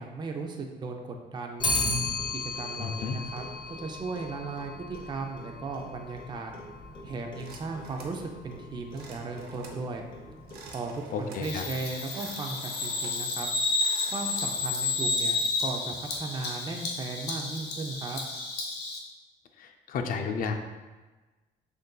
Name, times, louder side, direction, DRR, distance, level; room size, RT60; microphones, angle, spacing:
voice 1, 0.0-1.7 2.3-3.4 3.8-6.5 7.0-10.0 10.7-13.5 14.1-18.2, right 3 dB, 25° right, 2 dB, 0.4 m, -36 dB
Clock, 1.6-11.0, left 2 dB, 30° left, 0.8 m, -36 dB
voice 2, 2.8-3.2 11.1-11.7 19.6-20.5, left 5 dB, 55° left, 6 dB, 0.5 m, -32 dB
sound 1, 7.4-8.2 8.9-9.8 10.4-11.5 11.9-13.2 13.6-14.5, right 4 dB, 70° right, 0.6 m, -48 dB
Bird vocalization bird call bird song, 11.4-19.0, left 3 dB, 80° left, 0.8 m, -31 dB
6.4 x 2.6 x 2.2 m, 1.2 s
cardioid pair, 110°, 17 cm